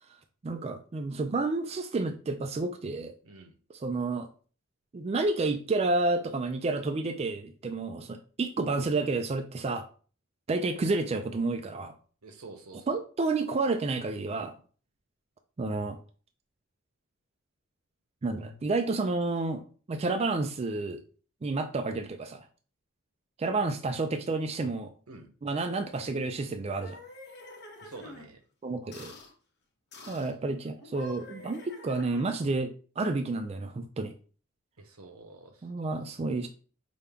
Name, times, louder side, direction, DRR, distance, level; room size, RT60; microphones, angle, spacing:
voice 1, 0.4-3.1 3.7-4.3 4.9-9.8 10.5-11.9 12.9-14.5 15.6-16.0 18.2-21.0 21.4-22.4 23.4-24.9 25.4-27.0 28.6-29.1 30.1-34.1 35.6-36.5, right 3 dB, 30° right, 6 dB, 0.3 m, -30 dB
voice 2, 3.2-3.5 12.2-13.0 25.1-25.3 27.8-28.4 34.8-35.9, right 3 dB, 90° right, 6 dB, 0.8 m, -48 dB
sound 1, 26.6-28.3 28.9-29.3 29.9-30.4 30.8-32.5, left 2 dB, 50° left, 0.9 m, -47 dB
5.2 x 2.2 x 3.4 m, 0.39 s
head